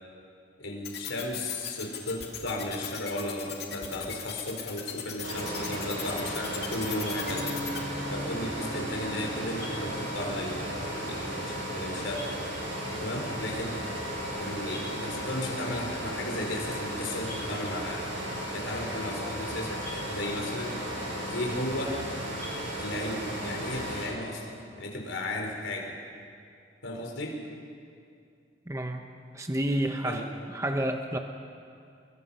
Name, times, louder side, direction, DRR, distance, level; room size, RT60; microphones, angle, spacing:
voice 1, 0.6-7.5 8.1-12.3 13.0-13.8 14.4-18.0 18.5-20.7 21.3-22.0 22.8-26.0 26.8-27.4 30.0-30.2, left 1 dB, 90° left, 1 dB, 4.3 m, -35 dB
sound 1, 0.8-7.8, left 9 dB, 55° left, 2.5 m, -37 dB
sound 2, 5.2-24.1, equal, 80° right, 7.4 m, -35 dB
Bass guitar, 7.3-13.5, equal, 35° right, 4.3 m, -42 dB
voice 2, 28.7-29.1 29.3-31.2, right 1 dB, 15° right, 4 dB, 0.9 m, -30 dB
28.0 x 23.5 x 5.6 m, 2.4 s
head